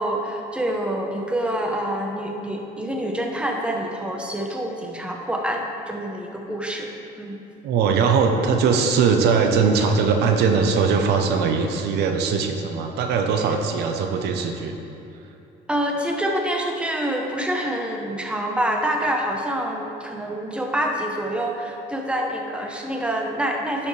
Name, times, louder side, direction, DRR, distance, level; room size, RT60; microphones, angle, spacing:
voice 1, 0.0-7.4 15.7-23.9, right 1 dB, 5° right, 1 dB, 0.9 m, -26 dB
voice 2, 7.6-14.7, right 5 dB, 75° right, 4 dB, 0.8 m, -20 dB
10.5 x 7.0 x 3.3 m, 2.9 s
cardioid pair, 110°, 17 cm